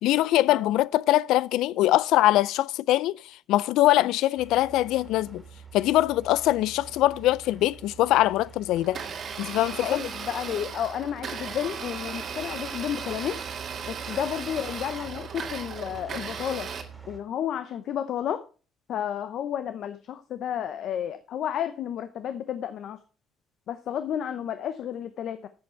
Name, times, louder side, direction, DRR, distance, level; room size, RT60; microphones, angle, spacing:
voice 1, 0.0-5.4 5.7-9.0 9.4-10.0, left 15 dB, 90° left, 0.4 m, -23 dB
sound 1, 4.4-17.2, right 6 dB, 10° right, 2.3 m, -46 dB
Domestic sounds home sounds, 8.8-16.8, right 6 dB, 45° right, 1.8 m, -36 dB
voice 2, 9.8-13.4 13.9-16.7 17.1-18.4 18.9-23.0 23.7-25.5, left 9 dB, 60° left, 0.8 m, -31 dB
11.0 x 7.3 x 4.4 m
cardioid pair, 140°, 0 cm